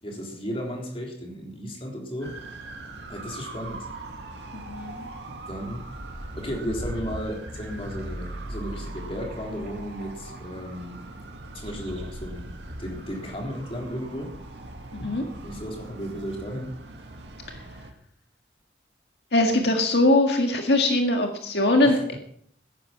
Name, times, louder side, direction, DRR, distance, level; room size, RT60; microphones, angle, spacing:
voice 1, 0.0-2.4 3.1-3.9 5.5-5.8 6.3-11.0 11.5-12.5 12.8-14.4 15.4-16.7 21.8-22.0, equal, 30° left, 0 dB, 3.7 m, -34 dB
sound 1, 2.2-17.9, right 2 dB, 90° right, 2.3 m, -40 dB
voice 2, 4.5-5.1 14.9-15.3 19.3-22.2, left 2 dB, 75° left, 3 dB, 1.8 m, -22 dB
sound 2, 7.5-10.4 10.7-10.8, equal, 50° right, 3.9 m, -39 dB
15.5 x 11.0 x 5.9 m, 0.63 s
head